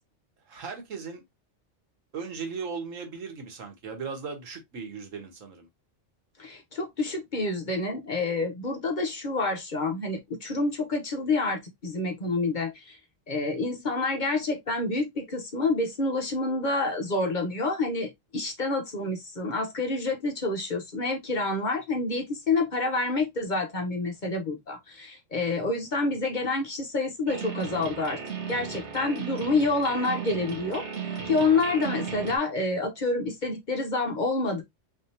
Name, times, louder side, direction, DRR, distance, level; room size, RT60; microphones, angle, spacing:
voice 1, 0.5-1.2 2.1-5.7, right 5 dB, 90° right, 1.5 m, -37 dB
voice 2, 6.4-13.0 13.3-28.2 28.5-30.8 31.2-34.6, left 3 dB, 40° left, 0.9 m, -28 dB
sound 1, 27.3-32.4, right 6 dB, 65° right, 1.2 m, -36 dB
3.8 x 3.4 x 2.7 m
omnidirectional pair, 1.3 m